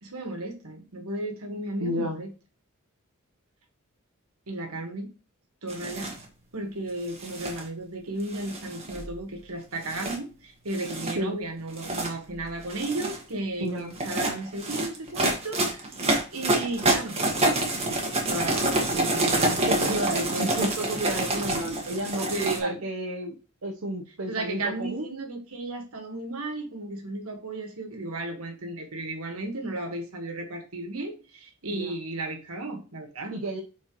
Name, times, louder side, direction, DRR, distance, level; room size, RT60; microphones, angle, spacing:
voice 1, 0.0-2.3 4.5-5.1 5.6-6.1 6.5-17.2 18.2-20.7 22.3-22.8 24.3-33.4, right 2 dB, 85° right, 4 dB, 1.6 m, -34 dB
voice 2, 1.8-2.2 11.2-11.4 13.6-13.9 19.7-23.4 23.6-25.1 31.7-31.9 33.3-33.6, right 1 dB, 70° right, 0 dB, 0.9 m, -31 dB
sound 1, 5.7-6.2 7.1-7.6 8.3-9.1 9.8-10.2 10.7-11.1 11.7-12.1 12.6-13.2 13.9-22.6, right 2 dB, 30° right, 1.6 m, -27 dB
9.8 x 4.3 x 3.1 m, 0.34 s
head